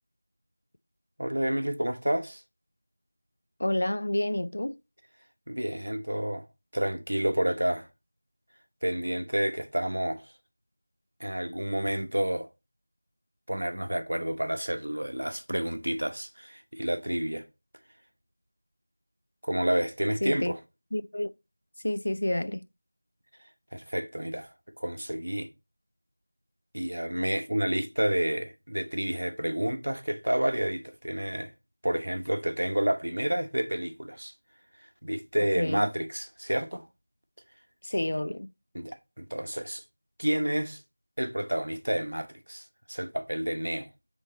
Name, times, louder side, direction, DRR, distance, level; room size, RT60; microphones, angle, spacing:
voice 1, 1.2-2.4 5.5-6.4 6.7-7.9 8.8-10.2 11.2-12.5 13.5-17.4 19.4-20.6 23.7-24.5 24.8-25.5 26.7-31.5 31.8-34.3 35.0-36.9 38.7-39.8 40.2-40.8 41.2-43.9, right 1 dB, 90° right, 1.0 m, -29 dB
voice 2, 3.6-4.8 20.2-20.5 20.9-21.3 21.8-22.6 35.6-35.9 37.8-38.5, left 1 dB, 65° left, 0.5 m, -29 dB
6.5 x 3.8 x 4.1 m
figure-of-eight pair, 175°, 0 cm